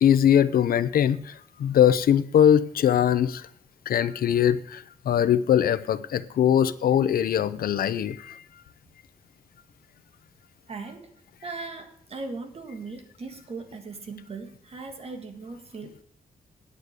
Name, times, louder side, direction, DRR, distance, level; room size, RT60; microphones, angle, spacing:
voice 1, 0.0-3.5 3.9-8.4, left 9 dB, 85° left, 14 dB, 0.6 m, -21 dB
voice 2, 10.7-11.1 11.4-16.0, right 3 dB, 40° right, 6 dB, 1.7 m, -39 dB
9.7 x 6.6 x 8.0 m, 0.64 s
wide cardioid pair, 150°, 15 cm